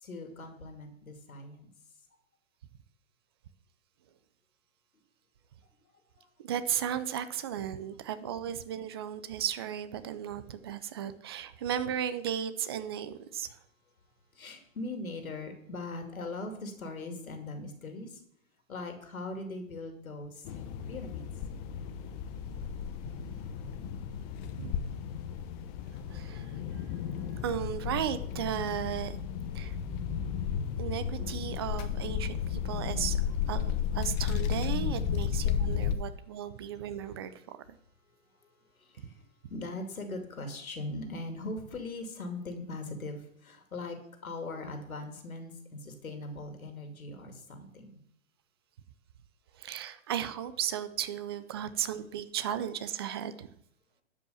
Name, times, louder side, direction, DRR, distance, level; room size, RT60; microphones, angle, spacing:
voice 1, 0.0-1.7 6.2-6.3 14.3-18.2 18.7-20.5 20.9-21.3 38.8-39.2 39.5-44.0 44.2-48.0, left 2 dB, 90° left, 5 dB, 2.5 m, -40 dB
voice 2, 6.4-13.6 23.2-23.3 24.5-25.0 26.1-26.5 27.4-29.2 29.5-29.7 30.8-33.2 33.5-37.6 49.5-53.5, right 10 dB, 20° right, 13 dB, 0.3 m, -35 dB
sound 1, 20.4-35.9, left 8 dB, 30° left, 0.8 m, -33 dB
12.0 x 5.5 x 7.0 m, 0.69 s
hypercardioid pair, 130°, 41 cm